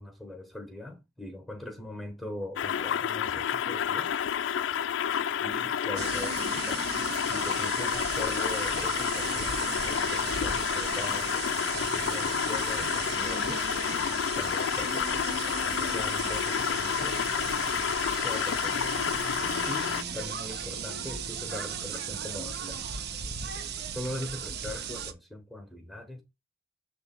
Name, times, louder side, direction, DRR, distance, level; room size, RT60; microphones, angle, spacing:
voice 1, 0.0-4.1 5.4-6.9 7.2-11.4 11.7-13.7 14.4-15.3 15.6-17.2 18.2-19.0 19.6-22.8 23.5-26.2, left 1 dB, ahead, 1.0 m, -41 dB
sound 1, 2.6-20.0, left 8 dB, 65° left, 0.3 m, -30 dB
sound 2, 6.0-25.1, right 7 dB, 55° right, 0.8 m, -36 dB
7.0 x 3.3 x 4.3 m
head